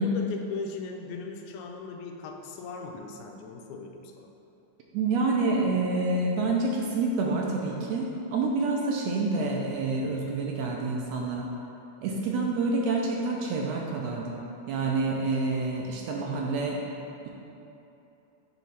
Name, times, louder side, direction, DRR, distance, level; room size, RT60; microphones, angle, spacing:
voice 1, 0.0-4.3, left 4 dB, 85° left, 3 dB, 2.0 m, -38 dB
voice 2, 4.9-11.5 12.0-16.8, right 3 dB, 75° right, -1 dB, 1.6 m, -28 dB
7.8 x 3.1 x 5.6 m, 2.9 s
omnidirectional pair, 3.4 m